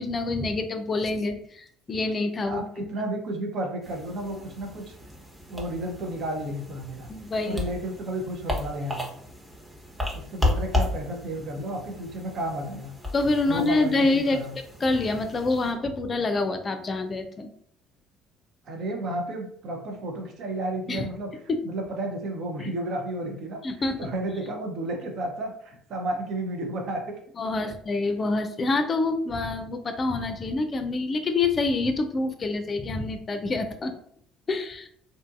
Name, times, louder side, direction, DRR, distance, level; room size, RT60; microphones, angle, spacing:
voice 1, 0.0-2.9 7.1-7.6 13.1-14.4 14.8-17.5 20.9-21.0 21.5-21.6 23.6-24.1 27.4-33.9 34.5-34.9, left 3 dB, 35° left, 7 dB, 0.4 m, -26 dB
voice 2, 2.5-5.0 5.5-7.1 7.5-9.1 10.1-12.9 13.5-14.5 18.6-21.3 21.6-27.2 27.6-27.7, right 1 dB, 60° right, 2 dB, 0.7 m, -32 dB
sound 1, 3.8-15.7, left 1 dB, 10° right, 0.8 m, -34 dB
2.7 x 2.5 x 2.3 m, 0.64 s
hypercardioid pair, 65°, 0 cm